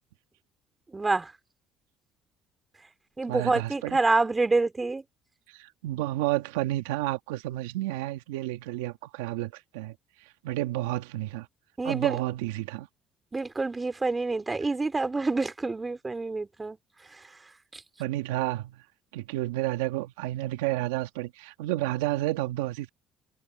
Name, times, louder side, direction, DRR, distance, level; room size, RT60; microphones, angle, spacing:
voice 1, 0.9-1.3 3.2-5.0 11.8-12.2 13.3-16.8 17.7-17.8, right 3 dB, 20° right, 3.1 m, -27 dB
voice 2, 3.3-4.0 5.5-9.9 10.4-11.5 11.8-12.9 18.0-18.8 19.1-22.9, right 16 dB, 90° right, 1.7 m, -31 dB
supercardioid pair, 75°, 0 cm